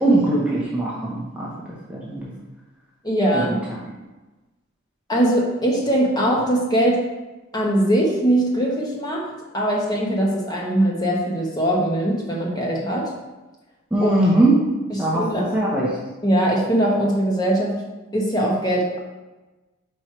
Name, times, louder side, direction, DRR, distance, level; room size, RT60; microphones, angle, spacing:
voice 1, 0.0-1.5 1.9-2.3 3.3-3.4 13.9-14.6 15.0-16.0, right 2 dB, 5° right, -6 dB, 0.8 m, -20 dB
voice 2, 3.0-3.6 5.1-7.0 7.5-9.3 9.5-13.0 14.0-14.1 14.9-15.5 16.2-17.8 18.1-19.0, right 1 dB, 20° left, -3 dB, 1.1 m, -21 dB
5.4 x 4.6 x 4.5 m, 1.1 s
head